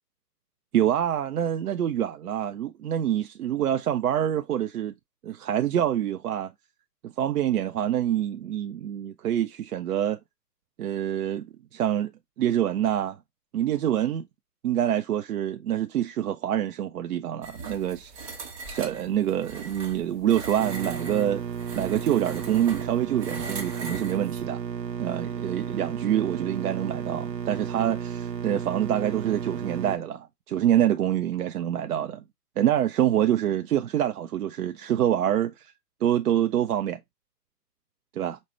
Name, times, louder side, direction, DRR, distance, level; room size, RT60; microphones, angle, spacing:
voice 1, 0.7-4.9 5.2-6.5 7.0-10.2 10.8-11.5 11.7-12.1 12.4-13.2 13.5-14.3 14.6-18.4 18.7-21.4 21.7-24.6 25.0-32.2 32.6-35.7 36.0-37.0 38.2-38.4, right 10 dB, 65° right, 0.5 m, -26 dB
sound 1, 17.4-24.4, right 4 dB, 20° right, 0.8 m, -40 dB
sound 2, 20.6-30.0, right 7 dB, 85° right, 0.9 m, -33 dB
5.2 x 2.1 x 3.1 m
figure-of-eight pair, 140°, 49 cm